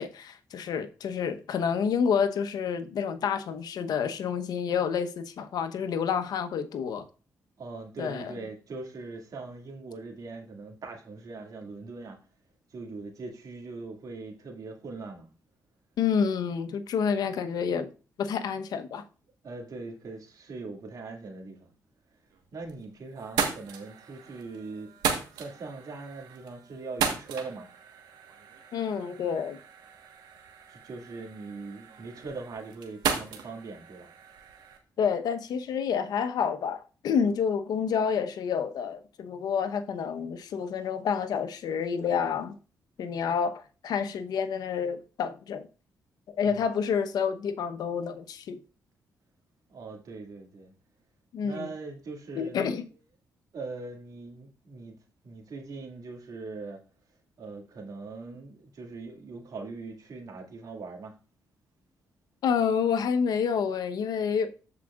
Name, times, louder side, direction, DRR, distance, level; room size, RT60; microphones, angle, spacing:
voice 1, 0.0-7.0 8.0-8.4 16.0-17.9 18.2-19.0 28.7-29.6 35.0-42.6 43.0-45.7 46.3-48.6 51.3-51.7 52.3-52.8 62.4-64.5, left 6 dB, 75° left, 0.9 m, -29 dB
voice 2, 7.6-12.2 12.7-15.3 18.6-18.8 19.4-21.7 22.5-27.7 30.7-34.1 46.4-46.7 49.7-50.7 51.4-53.0 53.5-55.0 55.2-56.8 57.4-61.2, right 3 dB, 60° right, 2.1 m, -41 dB
sound 1, 22.3-22.8 23.2-34.8, right 6 dB, 90° right, 1.3 m, -36 dB
14.0 x 4.9 x 2.4 m
cardioid pair, 65°, 7 cm